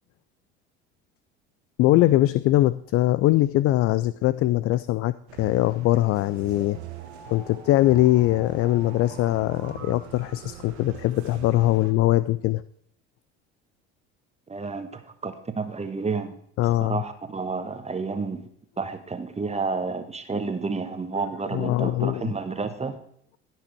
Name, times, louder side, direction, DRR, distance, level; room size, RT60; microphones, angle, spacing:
voice 1, 1.8-6.8 7.3-12.6 16.6-17.0 21.2-21.3 21.5-22.2, left 15 dB, 45° left, 17 dB, 0.4 m, -22 dB
sound 1, 5.3-11.9, right 8 dB, 80° right, 1.5 m, -42 dB
voice 2, 14.5-16.3 16.8-18.5 18.8-23.0, right 4 dB, 20° right, 8 dB, 1.2 m, -30 dB
15.0 x 6.1 x 4.5 m, 0.68 s
hypercardioid pair, 75°, 32 cm